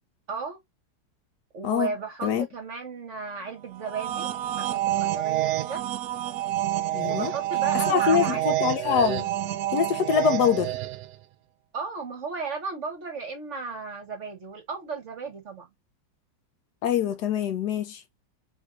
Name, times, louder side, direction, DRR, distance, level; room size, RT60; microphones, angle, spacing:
voice 1, 0.3-0.6 1.5-4.3 4.5-5.8 7.0-8.6 11.7-15.7, right 4 dB, 45° right, 1.2 m, -35 dB
sound 1, 3.8-11.1, right 14 dB, 75° right, 0.9 m, -28 dB
voice 2, 6.9-7.3 7.9-9.2 9.7-10.7 16.8-18.0, left 8 dB, 70° left, 1.2 m, -24 dB
4.6 x 3.6 x 2.4 m
omnidirectional pair, 2.0 m